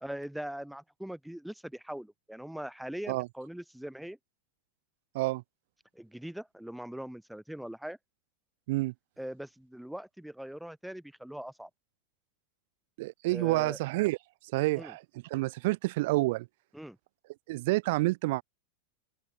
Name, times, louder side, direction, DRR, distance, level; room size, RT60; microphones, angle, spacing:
voice 1, 0.0-4.2 5.9-8.0 9.2-11.7 13.3-13.8 14.8-14.9 16.7-17.0, right 1 dB, ahead, 1.2 m, -41 dB
voice 2, 13.0-14.2 14.5-15.0 15.3-16.5 17.5-18.4, right 21 dB, 50° right, 1.2 m, -28 dB
open air
figure-of-eight pair, 90°, 0 cm